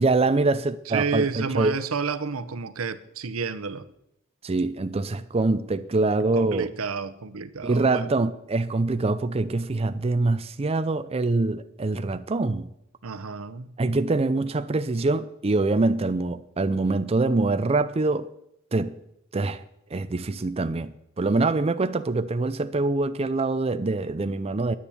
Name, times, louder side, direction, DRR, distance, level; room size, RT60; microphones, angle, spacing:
voice 1, 0.0-1.7 4.4-6.7 7.6-12.7 13.8-18.3 18.7-19.0 19.3-19.6 19.9-20.9 21.2-24.8, right 3 dB, 30° right, 0.5 m, -24 dB
voice 2, 0.9-3.9 6.3-8.1 13.0-13.7, right 5 dB, 85° right, 0.8 m, -30 dB
10.0 x 9.6 x 7.1 m
head